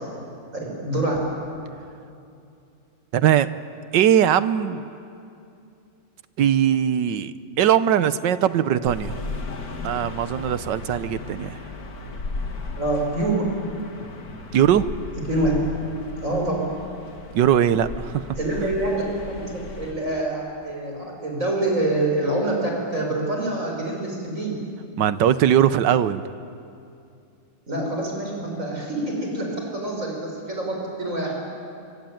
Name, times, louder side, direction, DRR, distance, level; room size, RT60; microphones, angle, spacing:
voice 1, 0.6-1.2 12.8-13.4 15.3-15.5 16.2-16.6 18.4-24.5 27.7-29.5 29.7-31.3, right 2 dB, 40° right, 0 dB, 6.6 m, -26 dB
voice 2, 3.1-3.5 3.9-4.9 6.4-9.2 9.8-11.6 14.5-14.9 17.3-18.3 18.6-18.7 25.0-26.2, right 10 dB, 75° right, 14 dB, 1.5 m, -20 dB
sound 1, 8.8-19.9, left 3 dB, 50° left, 2.3 m, -35 dB
26.0 x 24.0 x 9.3 m, 2.6 s
omnidirectional pair, 2.0 m